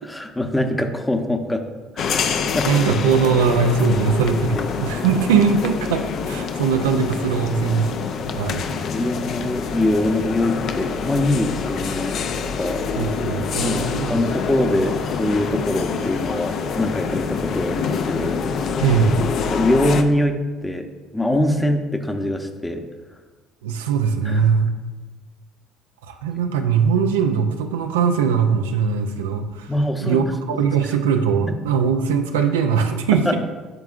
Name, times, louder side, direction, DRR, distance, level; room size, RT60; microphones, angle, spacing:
voice 1, 0.0-1.6 1.9-2.2 2.5-2.7 4.6-4.7 8.8-12.8 13.5-18.4 19.4-20.8 21.1-22.8 24.2-24.5 29.7-30.2 31.5-31.6 33.2-33.3, left 1 dB, 10° left, 5 dB, 0.8 m, -23 dB
sound 1, 2.0-20.0, left 5 dB, 55° left, 0.4 m, -26 dB
voice 2, 2.7-8.7 13.0-14.2 18.8-19.3 23.6-24.7 26.1-29.7 30.0-33.4, right 6 dB, 90° right, 5 dB, 0.4 m, -20 dB
10.5 x 3.6 x 2.4 m, 1.3 s
hypercardioid pair, 70°, 0 cm